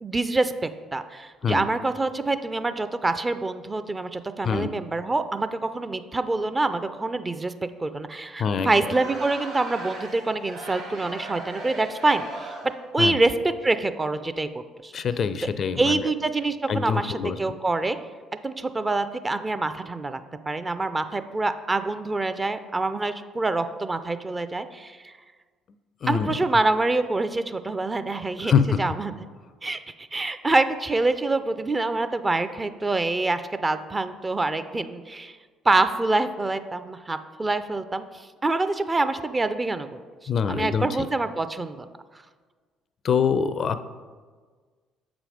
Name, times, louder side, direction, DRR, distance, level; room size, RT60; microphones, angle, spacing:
voice 1, 0.0-7.5 7.8-13.3 13.6-14.9 15.8-18.0 18.4-20.2 20.5-25.1 26.1-28.5 28.8-29.1 29.6-35.4 35.6-39.9 40.5-41.9, right 2 dB, 25° right, 10 dB, 0.5 m, -26 dB
voice 2, 8.4-8.8 13.0-13.2 14.9-16.1 16.7-17.4 26.0-26.4 28.4-28.8 40.3-40.9 43.0-43.8, left 6 dB, 50° left, 13 dB, 0.4 m, -24 dB
Crowd, 8.7-12.9, right 2 dB, 75° right, 2.0 m, -38 dB
7.3 x 5.0 x 5.0 m, 1.5 s
hypercardioid pair, 50°, 0 cm